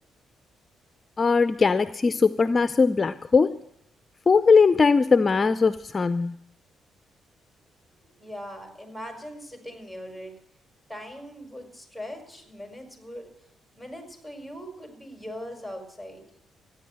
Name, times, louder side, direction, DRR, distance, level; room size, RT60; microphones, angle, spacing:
voice 1, 1.2-3.6 4.3-6.3, left 4 dB, 30° left, 12 dB, 0.5 m, -20 dB
voice 2, 8.2-10.3 10.9-13.3 13.8-16.3, equal, 10° right, 3 dB, 4.8 m, -40 dB
15.0 x 10.0 x 7.8 m, 0.70 s
cardioid pair, 90°, 0 cm